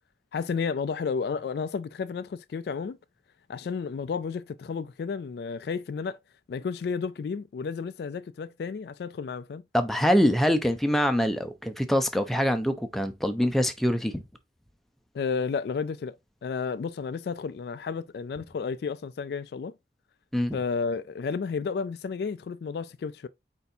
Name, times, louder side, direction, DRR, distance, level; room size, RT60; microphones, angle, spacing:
voice 1, 0.3-3.0 3.5-6.2 6.5-9.6 15.1-19.7 20.5-23.3, left 5 dB, 60° left, 0.3 m, -32 dB
voice 2, 9.7-14.2 20.3-20.6, equal, ahead, 0.5 m, -24 dB
4.5 x 4.0 x 2.6 m
head